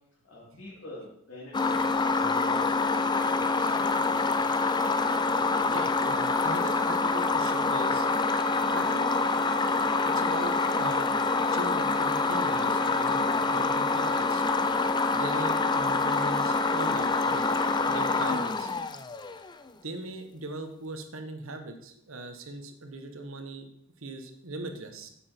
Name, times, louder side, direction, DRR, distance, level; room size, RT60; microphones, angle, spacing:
voice 1, 0.2-4.4, left 1 dB, 60° left, -7 dB, 2.9 m, -45 dB
sound 1, 1.5-19.5, left 3 dB, 20° left, 0.5 m, -26 dB
voice 2, 5.7-9.1 10.1-11.1 11.5-14.4 15.1-17.4 17.9-18.7 19.8-23.7 24.0-25.1, right 2 dB, 70° right, 6 dB, 1.3 m, -39 dB
9.0 x 7.4 x 4.4 m, 0.72 s
head